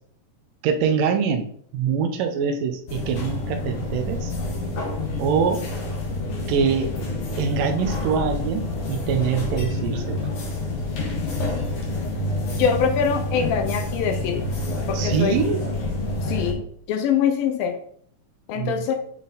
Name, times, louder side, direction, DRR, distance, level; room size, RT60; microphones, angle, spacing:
voice 1, 0.6-1.5 1.7-4.3 5.2-5.6 6.5-7.0 7.4-10.3 14.9-15.6 18.5-18.9, right 6 dB, 75° right, 6 dB, 2.2 m, -24 dB
sound 1, 2.9-16.5, left 2 dB, 50° left, 1.9 m, -28 dB
voice 2, 12.6-14.5 14.9-15.4 16.3-16.6 16.9-17.8 18.5-19.0, left 7 dB, 75° left, 6 dB, 2.4 m, -23 dB
8.4 x 5.5 x 4.0 m, 0.62 s
omnidirectional pair, 4.3 m